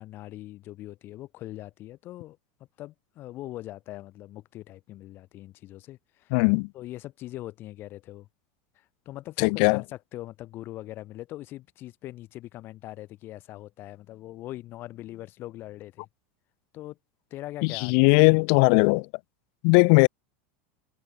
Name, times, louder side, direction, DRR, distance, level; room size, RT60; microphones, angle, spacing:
voice 1, 0.0-2.4 2.8-6.4 6.7-8.3 8.7-16.1 16.7-17.0 17.3-18.4, left 15 dB, 35° left, 4.8 m, -41 dB
voice 2, 6.3-6.7 9.4-9.8 17.8-19.1 19.6-20.1, left 40 dB or more, 55° left, 0.4 m, -19 dB
supercardioid pair, 155°, 6 cm